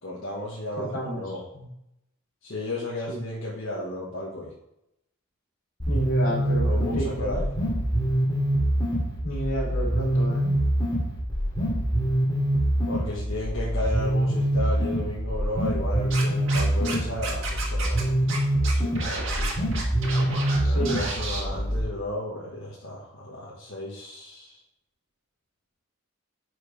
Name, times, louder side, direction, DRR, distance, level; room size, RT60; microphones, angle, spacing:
voice 1, 0.0-1.4 2.4-4.5 6.6-7.5 12.8-18.3 18.7-19.5 20.6-24.6, left 1 dB, 65° left, -5 dB, 1.4 m, -34 dB
voice 2, 0.8-1.2 1.5-1.7 3.1-3.2 5.9-7.4 9.2-10.5 20.6-21.0, equal, 85° left, -2 dB, 2.4 m, -31 dB
sound 1, 5.8-21.8, right 1 dB, 20° left, 2.4 m, -25 dB
Scratching (performance technique), 16.1-16.9 17.2-18.0 18.3-18.4 18.6-20.6 20.8-21.4, right 3 dB, 65° right, 1.7 m, -32 dB
9.6 x 4.8 x 3.3 m, 0.83 s
head